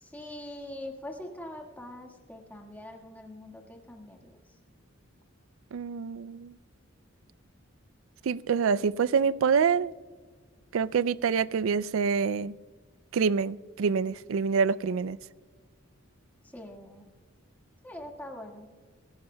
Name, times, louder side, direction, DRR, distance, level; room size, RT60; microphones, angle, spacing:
voice 1, 0.0-4.4 16.5-17.1 17.8-18.7, left 1 dB, 10° left, 1.7 m, -43 dB
voice 2, 5.7-6.6 8.2-9.9 10.7-12.5 13.1-15.2, right 6 dB, 70° right, 0.4 m, -26 dB
26.5 x 16.0 x 2.2 m
head